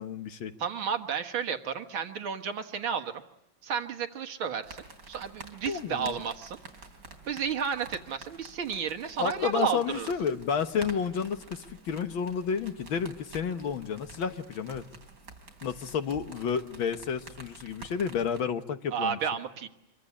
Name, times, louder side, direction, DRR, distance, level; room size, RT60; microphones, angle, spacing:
voice 1, 0.0-0.5 5.7-6.2 9.2-14.9 15.6-19.2, left 7 dB, 75° left, 8 dB, 2.1 m, -31 dB
voice 2, 0.6-3.1 3.6-4.8 5.1-6.6 7.3-10.1 18.9-19.7, right 7 dB, 80° right, 6 dB, 2.3 m, -32 dB
sound 1, 4.6-18.4, right 3 dB, 45° right, 3.7 m, -49 dB
26.0 x 23.5 x 9.8 m, 0.79 s
omnidirectional pair, 2.2 m